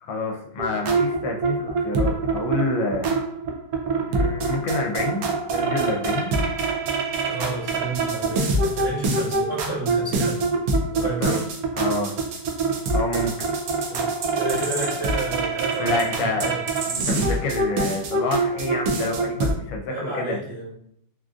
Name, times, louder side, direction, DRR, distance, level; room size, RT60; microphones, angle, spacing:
voice 1, 0.0-3.2 4.1-6.3 11.2-11.4 11.8-12.2 12.9-13.3 15.8-16.5 16.9-20.4, left 2 dB, 80° left, 2 dB, 1.2 m, -28 dB
sound 1, 0.6-19.5, right 3 dB, 75° right, 0.8 m, -25 dB
voice 2, 7.2-10.4 10.9-11.4 13.8-14.0 14.3-16.6 19.9-20.7, right 2 dB, 15° right, -8 dB, 1.0 m, -31 dB
3.8 x 2.4 x 2.4 m, 0.66 s
omnidirectional pair, 2.1 m